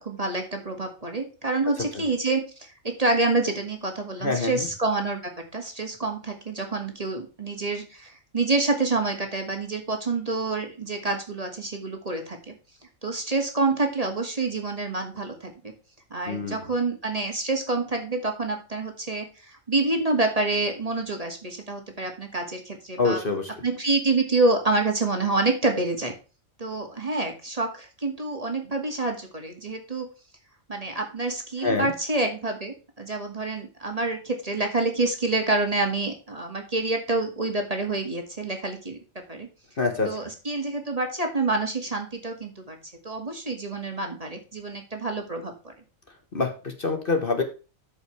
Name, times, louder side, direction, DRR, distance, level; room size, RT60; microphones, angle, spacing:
voice 1, 0.0-5.2 5.5-12.5 13.0-15.5 16.1-23.2 23.6-26.1 26.6-30.1 30.7-39.0 39.3-39.5 40.0-42.8 43.0-45.7, right 3 dB, 25° right, 3 dB, 2.2 m, -27 dB
voice 2, 4.2-4.7 16.3-16.6 23.0-23.5 31.6-31.9 39.8-40.2 46.3-47.4, left 3 dB, 40° left, 5 dB, 1.6 m, -25 dB
13.0 x 5.6 x 3.3 m, 0.33 s
omnidirectional pair, 1.4 m